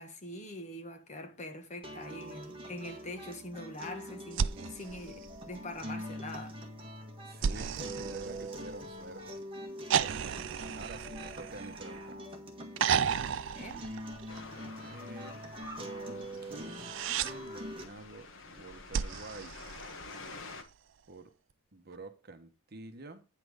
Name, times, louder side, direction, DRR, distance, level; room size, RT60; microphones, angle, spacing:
voice 1, 0.0-6.6 13.5-13.8, left 1 dB, 35° left, 1.6 m, -44 dB
sound 1, 1.8-17.8, equal, 25° right, 1.6 m, -44 dB
sound 2, 4.3-5.9 7.4-9.1 9.9-12.2 12.8-14.6 16.6-17.3 18.9-20.4 21.9-22.0, right 7 dB, 65° right, 0.4 m, -34 dB
voice 2, 7.3-9.4 10.1-10.4 10.7-12.4 14.6-15.4 16.0-19.7 21.1-21.3 21.7-23.2, right 2 dB, 50° right, 1.1 m, -48 dB
sound 3, 14.3-20.6, left 3 dB, 65° left, 1.5 m, -48 dB
9.3 x 6.0 x 5.0 m
head